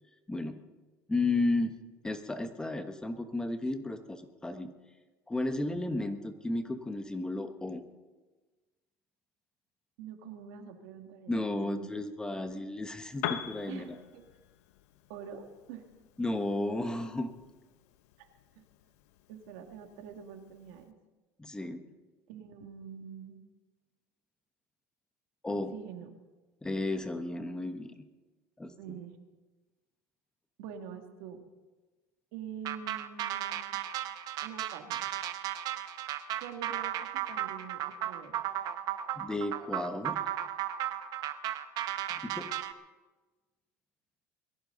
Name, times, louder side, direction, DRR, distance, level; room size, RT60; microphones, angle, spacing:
voice 1, 0.3-0.6 1.1-1.7 2.0-4.7 5.3-7.8 11.3-13.9 16.2-17.3 21.4-21.8 25.4-25.7 26.6-27.9 28.6-29.0 39.2-40.2 42.2-42.5, left 2 dB, 10° left, 8 dB, 1.2 m, -33 dB
voice 2, 10.0-11.9 13.7-14.3 15.1-15.9 18.2-18.3 18.6-18.7 19.3-20.9 22.3-23.4 25.7-26.1 28.8-29.2 30.6-31.4 32.3-33.8 34.4-35.0 36.4-38.3, right 7 dB, 75° right, 5 dB, 2.3 m, -45 dB
Piano, 13.1-20.9, left 11 dB, 85° left, 1.1 m, -45 dB
sound 1, 32.6-42.7, right 12 dB, 55° right, 1.1 m, -35 dB
22.0 x 14.5 x 4.0 m, 1.2 s
supercardioid pair, 120°, 8 cm